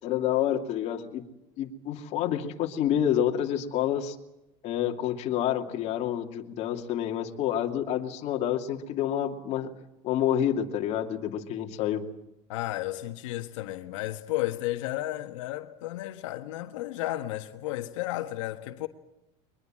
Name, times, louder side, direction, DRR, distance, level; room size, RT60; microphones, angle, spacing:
voice 1, 0.0-1.2 1.6-4.2 4.6-9.7 10.0-12.1, left 10 dB, 45° left, 2.6 m, -28 dB
voice 2, 12.5-18.9, left 15 dB, 85° left, 1.5 m, -33 dB
23.0 x 21.0 x 7.5 m
supercardioid pair, 150°, 16 cm